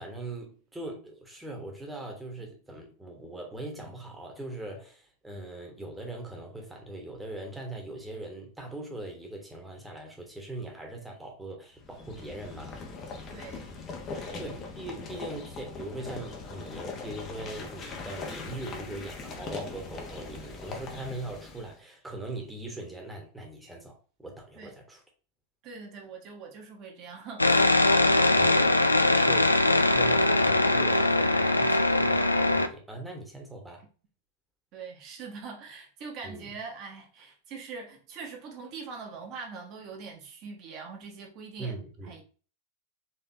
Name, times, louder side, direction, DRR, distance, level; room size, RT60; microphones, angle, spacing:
voice 1, 0.0-12.8 14.4-25.0 29.2-33.8 36.2-36.5 41.6-42.1, right 2 dB, 5° right, 1.3 m, -40 dB
sound 1, 11.8-21.8, left 4 dB, 30° left, 0.9 m, -40 dB
voice 2, 13.3-13.7 14.1-14.4 24.5-24.7 25.6-27.7 29.1-29.4 34.7-41.8 42.0-42.2, right 5 dB, 40° right, 1.3 m, -43 dB
sound 2, 27.4-32.7, left 2 dB, 85° left, 0.3 m, -22 dB
4.4 x 3.2 x 2.7 m
figure-of-eight pair, 90°, 0 cm